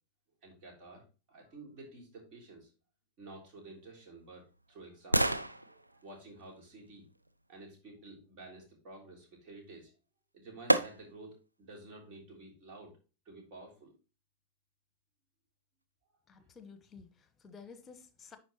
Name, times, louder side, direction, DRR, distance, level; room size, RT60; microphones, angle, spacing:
voice 1, 0.4-2.7 3.2-7.1 7.5-9.9 10.3-13.0 13.2-13.9, right 2 dB, 40° right, 3.4 m, -51 dB
sound 1, 3.6-7.7 9.8-9.9 10.7-11.4 11.9-12.0, right 1 dB, 85° right, 0.5 m, -34 dB
voice 2, 16.3-18.4, left 5 dB, 20° left, 1.1 m, -53 dB
10.0 x 4.3 x 3.0 m
figure-of-eight pair, 90°, 0 cm